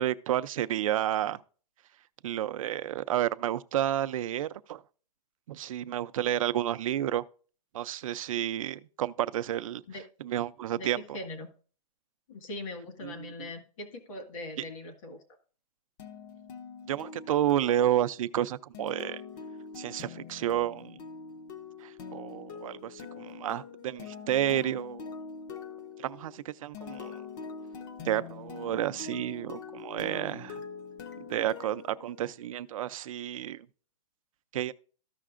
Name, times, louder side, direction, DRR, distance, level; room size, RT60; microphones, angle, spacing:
voice 1, 0.0-1.4 2.2-4.8 5.5-7.2 7.7-9.8 10.2-11.0 13.0-13.1 16.9-19.2 19.8-21.0 21.8-25.1 26.0-27.2 28.0-30.6 31.3-33.6 34.5-34.7, right 12 dB, 55° right, 0.5 m, -30 dB
voice 2, 10.7-11.5 12.3-15.2, left 2 dB, 55° left, 1.8 m, -41 dB
sound 1, 16.0-32.7, left 5 dB, 30° left, 0.7 m, -44 dB
14.0 x 5.8 x 2.5 m
hypercardioid pair, 165°, 20 cm